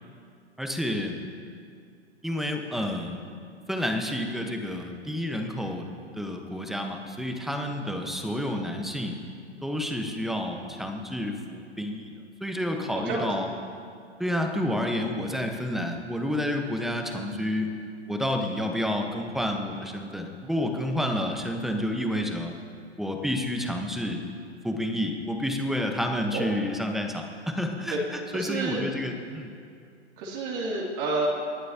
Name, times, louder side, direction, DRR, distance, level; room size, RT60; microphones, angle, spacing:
voice 1, 0.6-1.2 2.2-3.2 3.7-5.9 6.1-9.2 9.6-12.1 12.4-13.5 14.2-17.7 18.1-22.5 23.0-24.2 24.6-29.5, left 1 dB, ahead, 3 dB, 1.2 m, -29 dB
voice 2, 28.3-28.9 30.2-31.3, right 3 dB, 40° right, -3 dB, 3.0 m, -29 dB
28.0 x 11.0 x 2.9 m, 2.4 s
hypercardioid pair, 120°, 35 cm